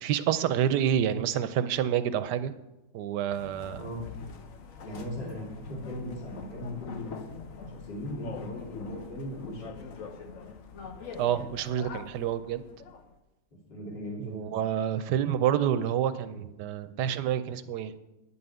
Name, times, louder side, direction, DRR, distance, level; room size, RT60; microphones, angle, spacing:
voice 1, 0.0-2.5 2.9-3.8 11.2-12.6 14.2-17.9, right 9 dB, 75° right, 12 dB, 1.1 m, -28 dB
sound 1, 3.3-13.1, left 5 dB, 55° left, 1.1 m, -44 dB
voice 2, 3.8-4.1 4.8-9.9 13.7-14.7, left 1 dB, 80° left, -3 dB, 3.4 m, -38 dB
10.0 x 5.6 x 7.8 m, 0.99 s
omnidirectional pair, 1.9 m